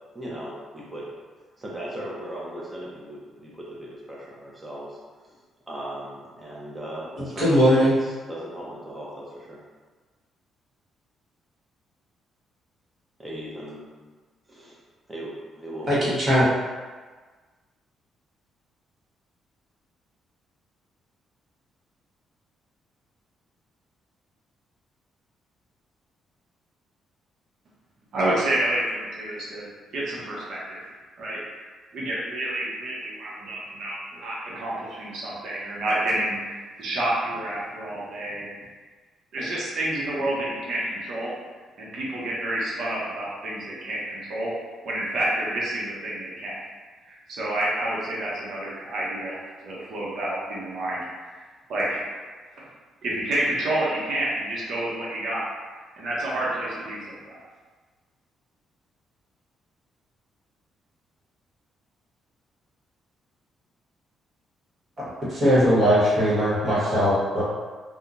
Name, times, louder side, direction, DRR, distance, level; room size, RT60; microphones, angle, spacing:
voice 1, 0.1-1.1 1.6-5.0 5.2-5.4 5.7-7.5 7.9-9.6 13.2-13.9 14.5-14.8 15.1-16.1, right 1 dB, 15° right, -4 dB, 0.8 m, -38 dB
voice 2, 7.2-8.0 15.9-16.5 65.3-67.4, equal, 45° right, -9 dB, 1.4 m, -20 dB
voice 3, 28.1-30.9 31.2-31.4 31.9-38.5 39.3-41.3 41.8-44.5 44.8-46.5 47.3-51.0 51.3-51.4 51.7-52.1 52.5-52.7 53.0-55.5 56.0-57.4, right 1 dB, 65° right, -6 dB, 0.9 m, -29 dB
2.8 x 2.3 x 2.5 m, 1.4 s
cardioid pair, 90°, 0 cm